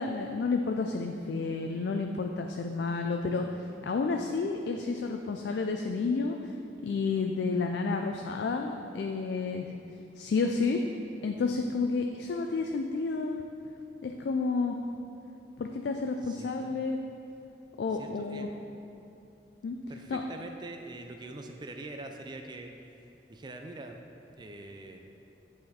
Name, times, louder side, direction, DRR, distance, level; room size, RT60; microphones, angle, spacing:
voice 1, 0.0-6.5 6.8-9.7 10.2-10.8 11.2-13.4 14.0-14.8 15.6-17.0 17.8-18.5 19.6-19.8 20.1-20.2, left 4 dB, 70° left, 4 dB, 0.3 m, -30 dB
voice 2, 16.2-16.8 17.9-18.5 19.9-24.0 24.4-25.0, right 2 dB, 25° right, 4 dB, 0.3 m, -44 dB
8.9 x 4.2 x 4.1 m, 2.7 s
head